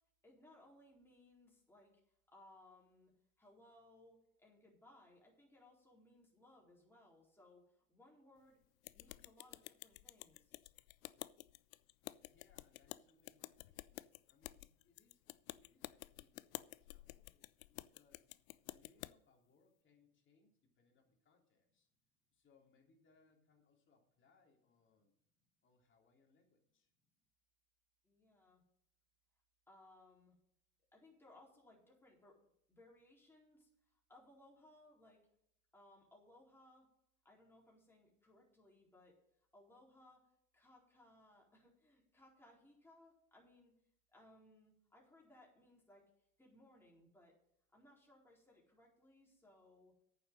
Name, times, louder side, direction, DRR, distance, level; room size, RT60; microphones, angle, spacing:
voice 1, 0.2-1.9 2.3-3.1 3.4-8.6 8.9-10.5 28.0-28.6 29.7-30.3 30.9-32.4 32.7-35.2 35.7-36.9 37.2-39.1 39.5-40.2 40.5-43.7 44.1-46.0 46.4-47.3 47.7-49.9, left 1 dB, 5° left, -3 dB, 4.3 m, -65 dB
sound 1, 8.8-19.1, left 18 dB, 75° left, 0.5 m, -51 dB
voice 2, 12.2-18.3 18.6-21.9 22.3-25.1 25.6-26.9, left 4 dB, 30° left, 1 dB, 3.3 m, -73 dB
9.2 x 7.1 x 7.7 m, 0.74 s
hypercardioid pair, 95°, 42 cm